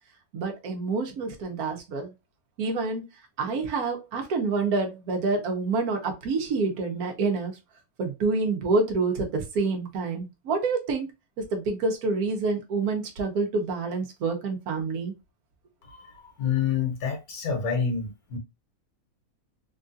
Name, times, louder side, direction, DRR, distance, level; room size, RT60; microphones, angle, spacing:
voice 1, 0.3-2.1 2.6-3.0 3.4-7.6 8.0-11.1 11.4-15.1, right 3 dB, 85° right, 1.3 m, -27 dB
voice 2, 15.9-18.4, left 7 dB, 80° left, 1.5 m, -28 dB
3.5 x 2.4 x 2.6 m
omnidirectional pair, 1.5 m